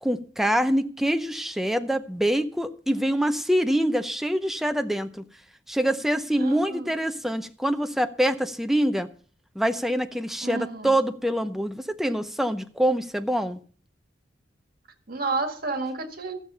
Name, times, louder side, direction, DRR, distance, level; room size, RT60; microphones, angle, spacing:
voice 1, 0.0-5.2 5.7-9.1 9.6-13.6, equal, ahead, 0.6 m, -25 dB
voice 2, 6.4-6.9 10.4-11.0 15.1-16.3, right 3 dB, 55° right, 1.8 m, -31 dB
13.5 x 7.3 x 5.6 m
head